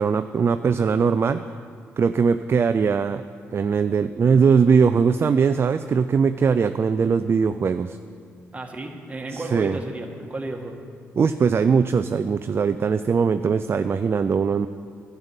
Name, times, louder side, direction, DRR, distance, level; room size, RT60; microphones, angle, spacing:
voice 1, 0.0-1.4 2.0-3.2 3.5-8.0 9.3-9.8 11.2-14.7, right 6 dB, 45° right, 10 dB, 0.4 m, -20 dB
voice 2, 8.5-10.8, right 2 dB, 20° right, 2 dB, 1.8 m, -33 dB
11.0 x 6.9 x 9.0 m, 2.1 s
hypercardioid pair, 50°, 6 cm